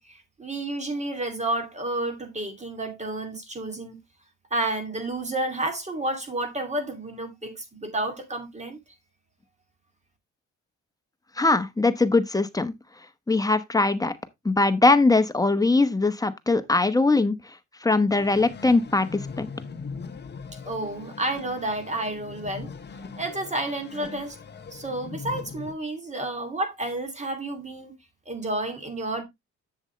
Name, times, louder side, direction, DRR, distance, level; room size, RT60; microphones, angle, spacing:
voice 1, 0.0-4.0 4.5-8.8 20.7-22.7 23.2-24.4 24.7-27.9 28.3-29.2, right 2 dB, 25° right, 2.5 m, -30 dB
voice 2, 11.4-12.7 13.3-14.1 14.4-17.4 17.8-19.5, left 3 dB, 10° left, 1.0 m, -21 dB
sound 1, 18.1-25.7, left 5 dB, 35° left, 0.9 m, -40 dB
7.8 x 7.2 x 3.2 m
cardioid pair, 90°, 30 cm